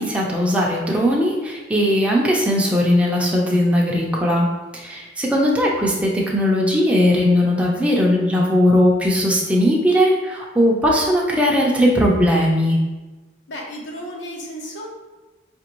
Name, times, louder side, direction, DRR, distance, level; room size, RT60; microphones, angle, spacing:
voice 1, 0.0-4.5 4.7-12.8, equal, 5° right, -3 dB, 0.5 m, -18 dB
voice 2, 13.5-14.9, equal, 65° left, -2 dB, 0.8 m, -33 dB
5.0 x 2.5 x 3.0 m, 1.2 s
head